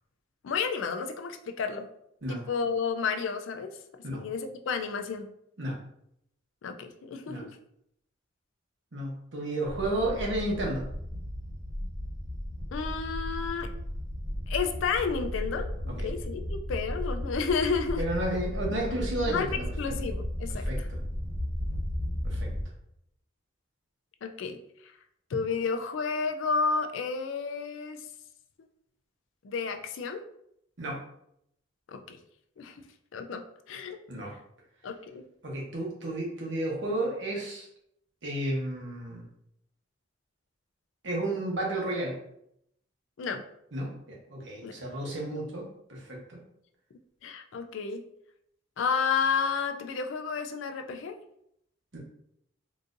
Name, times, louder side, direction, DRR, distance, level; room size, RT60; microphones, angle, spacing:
voice 1, 0.4-1.9 2.3-3.8 4.1-5.3 6.6-7.5 12.7-13.7 14.5-18.0 19.3-20.9 24.2-24.6 25.3-28.0 29.4-30.2 31.9-32.2 32.6-32.8 33.1-34.0 34.8-35.3 43.2-43.4 44.6-44.8 45.3-45.4 47.2-48.0 48.8-51.2, left 5 dB, 75° left, 6 dB, 0.4 m, -31 dB
voice 2, 8.9-10.9 16.0-16.1 18.0-19.7 20.6-20.8 22.2-22.5 30.8-31.0 34.1-34.3 35.4-37.7 38.2-39.2 41.0-42.2 43.7-46.4 51.9-52.0, right 1 dB, 65° right, -2 dB, 1.0 m, -32 dB
sound 1, 9.6-22.6, equal, 5° right, 1.3 m, -34 dB
3.9 x 2.6 x 2.5 m, 0.74 s
head